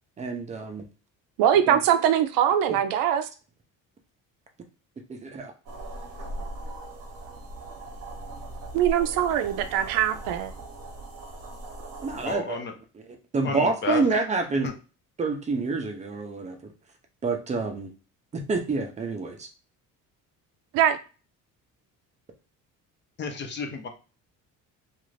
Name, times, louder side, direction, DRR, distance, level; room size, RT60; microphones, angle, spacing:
voice 1, 0.2-0.9 1.7-1.8 2.7-2.8 5.1-5.5 12.0-12.6 13.3-14.7 15.2-16.7 17.2-17.9 18.3-19.5, right 3 dB, 20° right, 0.5 m, -27 dB
voice 2, 1.4-3.3 8.7-10.5 20.7-21.0, right 10 dB, 85° right, 0.5 m, -22 dB
sound 1, 5.7-12.4, right 1 dB, 45° right, 0.8 m, -39 dB
voice 3, 12.2-12.7 13.4-14.0 14.6-14.7 23.2-23.9, left 5 dB, 35° left, 0.6 m, -32 dB
2.5 x 2.5 x 3.2 m
cardioid pair, 150°, 34 cm